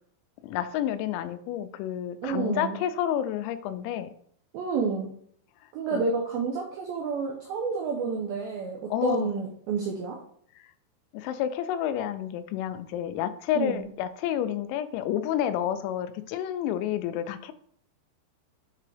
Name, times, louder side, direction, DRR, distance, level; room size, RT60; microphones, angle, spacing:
voice 1, 0.4-4.1 5.9-6.0 8.9-9.3 11.1-17.5, left 10 dB, 85° left, 11 dB, 2.9 m, -29 dB
voice 2, 2.2-2.8 4.5-5.1 5.7-10.2 13.6-13.9, right 5 dB, 90° right, 0 dB, 2.1 m, -30 dB
7.6 x 3.7 x 3.3 m, 0.63 s
omnidirectional pair, 5.2 m